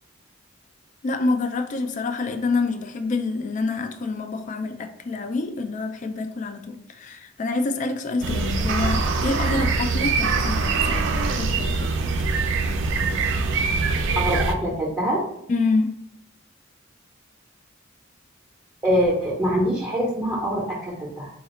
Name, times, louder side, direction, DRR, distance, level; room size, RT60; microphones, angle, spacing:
voice 1, 1.0-11.9 13.7-13.8 15.5-16.0, left 3 dB, 40° left, 7 dB, 0.3 m, -27 dB
sound 1, 8.2-14.5, right 4 dB, 60° right, 0.4 m, -23 dB
voice 2, 14.2-15.2 18.8-21.3, equal, 10° right, -5 dB, 0.6 m, -24 dB
4.1 x 2.4 x 2.9 m, 0.75 s
head